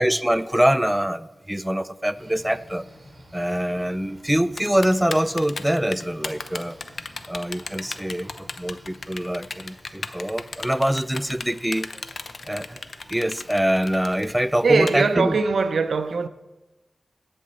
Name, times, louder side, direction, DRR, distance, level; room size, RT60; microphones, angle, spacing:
voice 1, 0.0-2.9 3.3-6.8 7.3-11.9 12.5-12.8 13.1-15.4, equal, 5° right, 0.4 m, -24 dB
sound 1, 2.1-15.7, equal, 35° right, 2.6 m, -50 dB
Typing, 4.6-14.9, left 4 dB, 65° left, 0.7 m, -34 dB
voice 2, 14.6-16.3, right 4 dB, 80° right, 0.6 m, -21 dB
10.5 x 5.5 x 7.9 m
wide cardioid pair, 85°, 0 cm